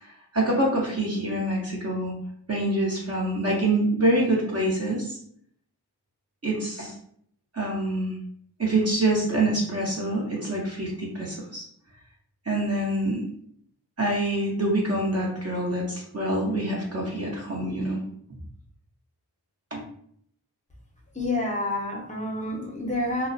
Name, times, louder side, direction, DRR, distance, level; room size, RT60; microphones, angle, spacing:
voice 1, 0.3-2.1 2.5-5.2 6.4-6.9 7.5-8.1 8.6-11.6 12.5-13.3 14.0-18.0 19.7-19.8, right 1 dB, 35° right, -3 dB, 0.7 m, -25 dB
voice 2, 21.1-23.3, left 2 dB, 20° left, -1 dB, 0.6 m, -28 dB
2.4 x 2.0 x 2.5 m, 0.66 s
wide cardioid pair, 60°, 41 cm